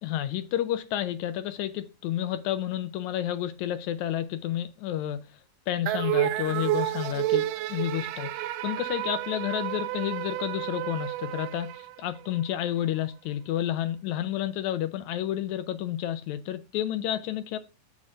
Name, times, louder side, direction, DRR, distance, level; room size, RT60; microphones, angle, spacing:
voice 1, 0.0-17.6, left 12 dB, 80° left, 1.7 m, -30 dB
sound 1, 5.9-12.4, right 15 dB, 85° right, 2.2 m, -30 dB
7.1 x 6.2 x 2.4 m
omnidirectional pair, 3.8 m